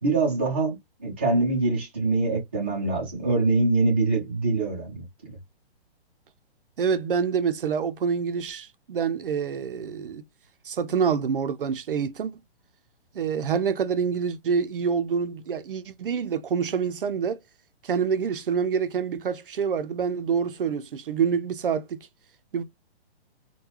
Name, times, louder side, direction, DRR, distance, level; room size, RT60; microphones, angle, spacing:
voice 1, 0.0-5.0, right 3 dB, 10° right, 0.5 m, -24 dB
voice 2, 6.8-10.2 10.7-12.3 13.1-17.4 17.8-22.1 22.5-22.6, right 6 dB, 55° right, 0.6 m, -26 dB
3.7 x 2.2 x 2.9 m
hypercardioid pair, 175°, 32 cm